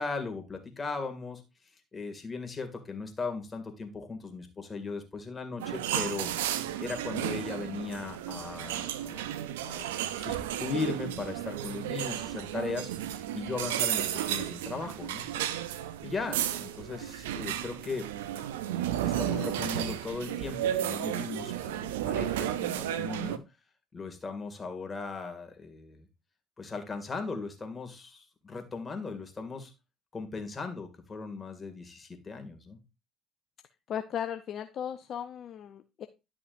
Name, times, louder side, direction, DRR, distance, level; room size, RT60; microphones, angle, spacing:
voice 1, 0.0-1.4 1.9-9.8 10.2-15.3 16.0-18.1 19.0-23.4 23.9-26.1 26.6-29.7 30.1-32.8, left 4 dB, 30° left, 5 dB, 2.2 m, -38 dB
sound 1, 5.6-23.4, right 11 dB, 90° right, 0.5 m, -33 dB
voice 2, 33.9-36.1, left 9 dB, 55° left, 8 dB, 0.6 m, -36 dB
11.5 x 6.1 x 2.6 m, 0.27 s
hypercardioid pair, 65°, 0 cm